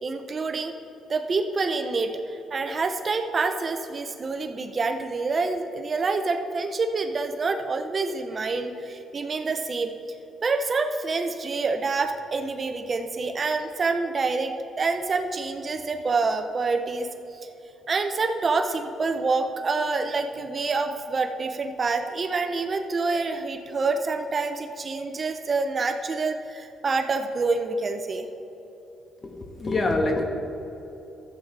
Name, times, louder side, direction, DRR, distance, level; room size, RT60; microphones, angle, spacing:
voice 1, 0.0-0.7 1.1-9.9 10.4-17.1 17.9-28.3, right 3 dB, 40° right, 7 dB, 0.6 m, -27 dB
voice 2, 29.2-30.2, left 2 dB, 40° left, 3 dB, 1.3 m, -25 dB
13.5 x 7.9 x 3.3 m, 3.0 s
cardioid pair, 90°, 0 cm